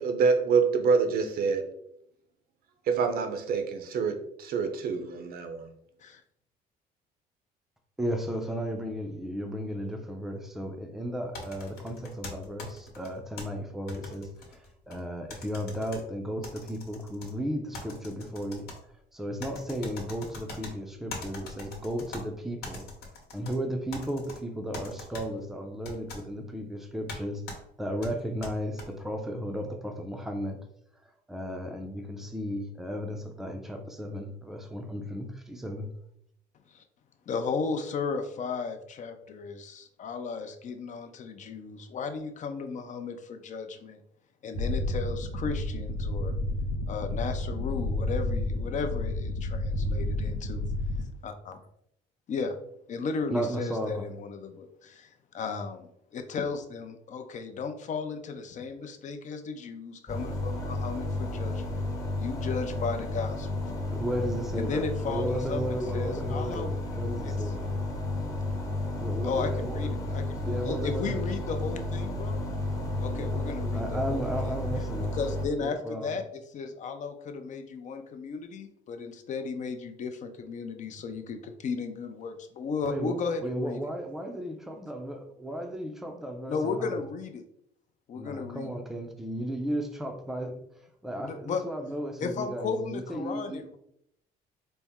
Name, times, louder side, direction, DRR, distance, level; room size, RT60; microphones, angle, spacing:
voice 1, 0.0-1.7 2.9-5.7, right 5 dB, 60° right, 6 dB, 0.6 m, -26 dB
voice 2, 8.0-18.7 19.1-22.9 23.3-30.6 31.3-35.9 53.3-54.0 63.9-67.7 69.0-69.9 70.4-71.2 73.2-73.3 73.7-75.3 75.6-76.2 82.8-87.0 88.1-90.6 91.0-93.6, equal, ahead, 4 dB, 0.5 m, -34 dB
sound 1, 11.3-13.4 13.9-15.0 15.3-16.0 16.4-17.3 17.7-18.8 19.4-20.7 21.1-22.2 22.6-23.6 23.9-24.4 24.7-25.2 25.8-26.2 27.1-27.2 27.5-27.6 28.0-28.9, left 3 dB, 70° left, 1.1 m, -41 dB
voice 3, 37.3-44.0 44.4-46.3 46.9-50.6 51.2-51.6 52.3-52.6 52.9-61.8 62.2-63.5 64.5-66.7 67.2-67.5 69.2-72.4 73.0-74.6 75.1-83.8 86.5-87.4 88.1-88.7 91.2-91.6 92.2-93.8, left 5 dB, 45° left, 7 dB, 0.5 m, -35 dB
sound 2, 44.5-51.0, left 1 dB, 90° left, 0.8 m, -30 dB
sound 3, 60.1-75.5, left 2 dB, 20° left, 0.8 m, -32 dB
4.2 x 2.0 x 3.5 m, 0.74 s
cardioid pair, 110°, 17 cm